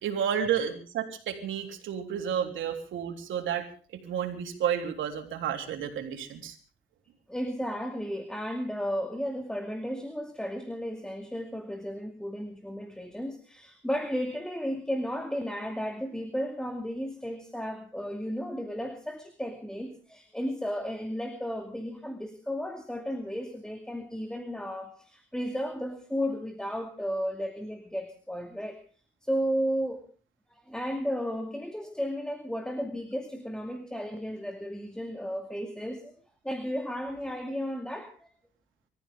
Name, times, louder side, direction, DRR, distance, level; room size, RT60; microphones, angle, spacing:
voice 1, 0.0-3.7 4.0-6.6, right 8 dB, 80° right, 4 dB, 3.6 m, -31 dB
voice 2, 7.3-28.8 29.2-30.0 30.5-36.1 36.4-38.3, equal, 5° left, 5 dB, 2.4 m, -34 dB
25.5 x 14.5 x 3.7 m, 0.40 s
cardioid pair, 90°, 20 cm